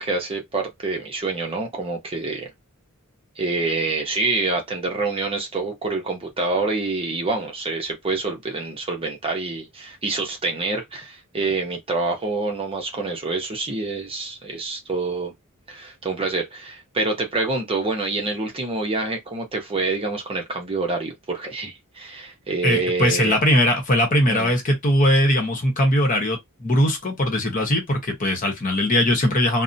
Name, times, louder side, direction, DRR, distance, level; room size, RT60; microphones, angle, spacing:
voice 1, 0.0-2.5 3.4-15.3 15.7-23.4 24.3-24.5, right 3 dB, 25° right, 0.7 m, -26 dB
voice 2, 22.6-29.6, left 1 dB, 40° left, 1.0 m, -20 dB
2.7 x 2.1 x 2.6 m
head